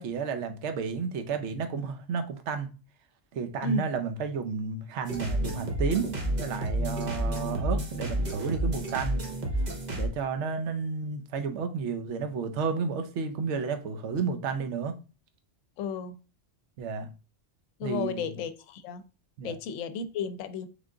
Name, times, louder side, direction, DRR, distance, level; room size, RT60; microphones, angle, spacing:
voice 1, 0.0-2.7 3.3-9.3 9.9-14.9 16.8-17.1 17.8-18.3 19.4-19.5, right 5 dB, 65° right, 0.9 m, -32 dB
sound 1, 5.1-10.1, right 1 dB, 40° right, 0.9 m, -30 dB
voice 2, 15.8-16.2 17.8-19.0 19.4-20.7, left 4 dB, 80° left, 0.9 m, -33 dB
3.7 x 3.4 x 3.7 m
omnidirectional pair, 1.3 m